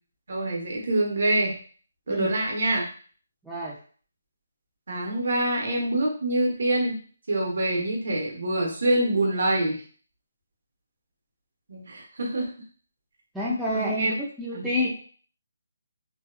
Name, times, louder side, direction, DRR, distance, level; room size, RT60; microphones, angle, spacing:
voice 1, 0.3-1.6 2.1-2.8 4.9-7.0 7.3-9.8 11.7-12.5 13.7-14.1 14.5-14.7, right 1 dB, 60° right, -1 dB, 0.8 m, -25 dB
voice 2, 3.4-3.8 13.3-14.9, left 1 dB, ahead, -8 dB, 0.3 m, -28 dB
2.7 x 2.2 x 2.4 m, 0.43 s
hypercardioid pair, 170°, 0 cm